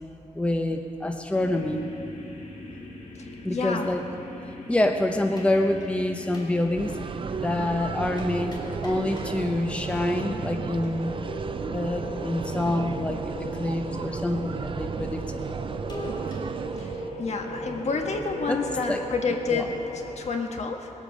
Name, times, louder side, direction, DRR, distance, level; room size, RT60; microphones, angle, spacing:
voice 1, 0.3-1.9 3.4-4.0 4.7-6.9 7.4-11.1 11.7-13.3 13.6-15.4 18.5-19.0 19.5-19.6, left 1 dB, 10° left, 4 dB, 0.8 m, -27 dB
sound 1, 1.3-20.2, equal, 75° left, 2.8 m, -39 dB
voice 2, 3.5-3.9 16.8-16.9 17.2-19.8 20.2-20.9, left 4 dB, 60° left, 3 dB, 1.4 m, -29 dB
sound 2, 5.4-6.0 6.3-7.0 7.6-7.8 8.2-9.8 10.7-11.0 14.9-15.1 15.9-16.4, left 2 dB, 35° left, 2.9 m, -43 dB
sound 3, 6.8-17.1, right 5 dB, 45° right, 0.5 m, -34 dB
20.5 x 8.5 x 6.4 m, 2.8 s
wide cardioid pair, 110°, 13 cm